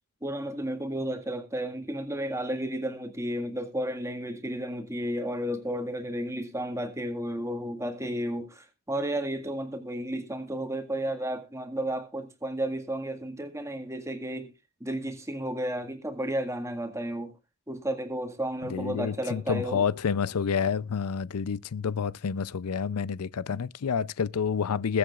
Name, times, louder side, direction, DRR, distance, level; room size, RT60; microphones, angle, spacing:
voice 1, 0.2-14.5 14.8-17.3 17.7-19.8, right 1 dB, 15° right, 1.8 m, -32 dB
voice 2, 18.7-25.0, left 6 dB, 90° left, 0.5 m, -29 dB
21.0 x 7.9 x 2.4 m
head